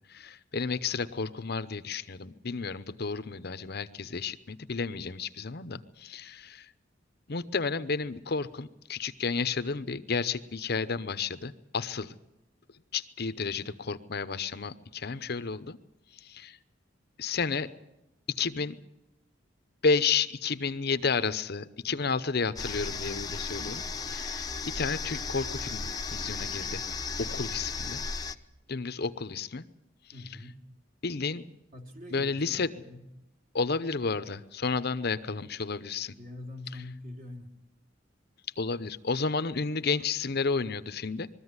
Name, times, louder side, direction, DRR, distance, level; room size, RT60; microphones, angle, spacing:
voice 1, 0.1-6.7 7.3-12.1 12.9-15.8 16.2-16.6 17.2-17.7 18.4-18.7 19.8-24.5 24.7-26.8 27.2-28.0 28.7-29.6 31.0-31.4 32.1-32.7 33.5-36.1 38.6-41.3, left 4 dB, 55° left, 13 dB, 0.8 m, -31 dB
sound 1, 22.6-28.4, left 4 dB, 20° left, 0.8 m, -35 dB
voice 2, 30.1-30.6 31.7-33.0 36.1-37.5, left 1 dB, 45° right, 4 dB, 2.7 m, -44 dB
22.0 x 14.5 x 9.6 m, 0.93 s
head